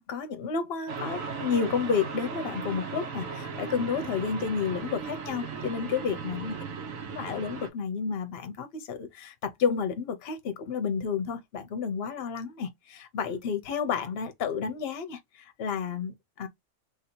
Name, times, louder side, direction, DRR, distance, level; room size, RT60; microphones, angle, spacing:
voice 1, 0.0-6.5 7.1-16.5, left 6 dB, 55° left, 0.9 m, -31 dB
sound 1, 0.9-7.7, right 5 dB, 90° right, 1.2 m, -37 dB
2.9 x 2.7 x 4.3 m
omnidirectional pair, 1.4 m